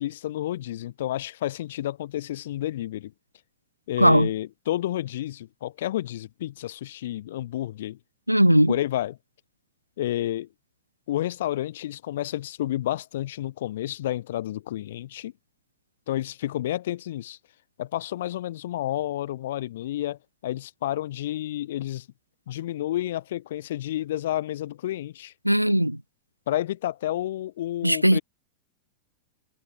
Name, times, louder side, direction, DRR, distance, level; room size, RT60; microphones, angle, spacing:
voice 1, 0.0-3.1 3.9-8.0 8.7-9.2 10.0-10.5 11.1-15.3 16.1-17.4 17.8-22.1 22.5-25.3 26.5-28.2, left 13 dB, 55° left, 4.8 m, -30 dB
voice 2, 4.0-4.3 8.3-8.7 25.4-26.0 27.8-28.2, equal, 90° right, 1.1 m, -18 dB
figure-of-eight pair, 90°, 0 cm